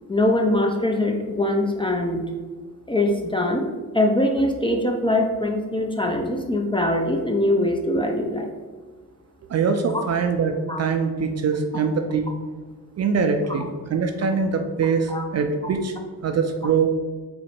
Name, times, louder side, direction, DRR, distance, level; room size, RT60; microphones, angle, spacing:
voice 1, 0.1-2.2 2.9-8.5 10.7-10.8 11.7-11.8 15.1-15.2, left 1 dB, 15° left, 2 dB, 0.4 m, -22 dB
voice 2, 9.5-12.3 13.0-15.9 16.2-16.9, right 5 dB, 40° right, 6 dB, 0.4 m, -23 dB
3.8 x 2.1 x 4.4 m, 1.4 s
supercardioid pair, 55°, 41 cm